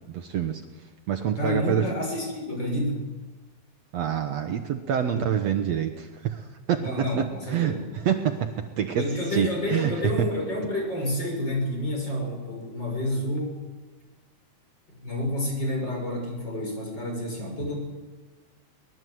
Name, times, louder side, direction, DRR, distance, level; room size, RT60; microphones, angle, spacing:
voice 1, 0.1-0.6 1.1-1.8 3.9-9.0 9.3-9.9 10.2-10.3, right 9 dB, 90° right, 6 dB, 1.4 m, -27 dB
voice 2, 1.4-3.1 5.1-5.3 6.8-7.8 9.0-13.6 14.9-17.8, left 1 dB, 25° left, 1 dB, 6.8 m, -29 dB
23.5 x 20.0 x 7.9 m, 1.2 s
omnidirectional pair, 4.7 m